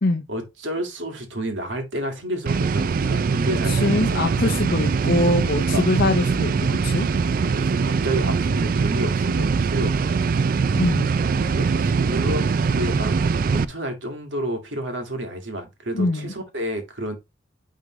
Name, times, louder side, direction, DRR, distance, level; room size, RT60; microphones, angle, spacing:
voice 1, 0.3-4.2 5.5-5.9 7.5-10.1 11.5-13.1 13.4-17.2, right 1 dB, 75° right, 1.9 m, -30 dB
sound 1, 2.5-13.6, right 5 dB, 50° right, 0.4 m, -22 dB
voice 2, 3.7-7.1 10.8-11.1 15.9-16.3, left 2 dB, 55° left, 0.8 m, -23 dB
9.4 x 3.7 x 3.1 m
head